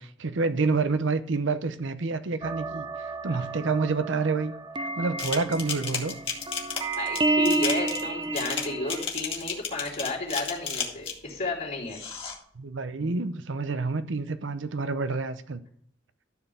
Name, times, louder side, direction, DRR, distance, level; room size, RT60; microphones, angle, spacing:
voice 1, 0.0-2.9 3.2-4.5 4.8-6.2 12.6-15.6, right 4 dB, 70° right, 0.7 m, -28 dB
sound 1, 2.4-9.1, right 3 dB, 25° right, 0.7 m, -30 dB
sound 2, 5.2-11.3 11.9-12.4, left 5 dB, 30° left, 2.1 m, -33 dB
voice 2, 7.0-12.0, left 2 dB, 50° left, 3.0 m, -32 dB
13.5 x 4.5 x 7.0 m
head